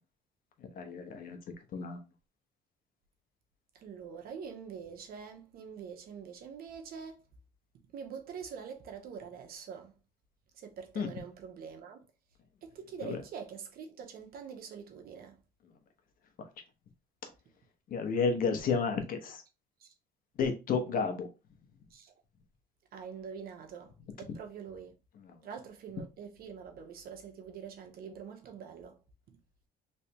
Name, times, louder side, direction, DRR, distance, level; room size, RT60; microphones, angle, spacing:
voice 1, 0.8-1.4 1.7-2.0 11.0-11.1 13.0-13.2 17.9-19.4 20.4-21.3, left 5 dB, 55° left, 1.0 m, -31 dB
voice 2, 3.7-7.2 7.9-9.9 10.5-12.0 12.6-15.4 19.8-19.9 21.9-22.1 22.9-24.9 25.4-29.0, right 6 dB, 60° right, 0.9 m, -45 dB
3.4 x 3.2 x 2.9 m
cardioid pair, 110°, 17 cm